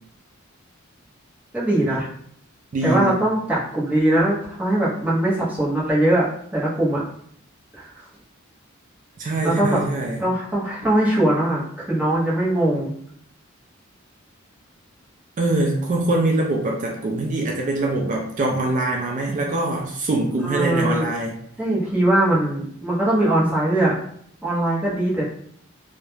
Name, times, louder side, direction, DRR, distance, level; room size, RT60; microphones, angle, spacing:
voice 1, 1.5-2.1 2.8-7.0 7.8-8.0 9.4-9.8 10.2-12.9 20.4-21.1 21.6-23.9 24.4-25.2, right 1 dB, 10° right, -7 dB, 0.7 m, -21 dB
voice 2, 2.7-3.1 9.2-10.2 15.4-21.4, right 2 dB, 40° right, 0 dB, 0.3 m, -23 dB
2.3 x 2.0 x 3.0 m, 0.65 s
head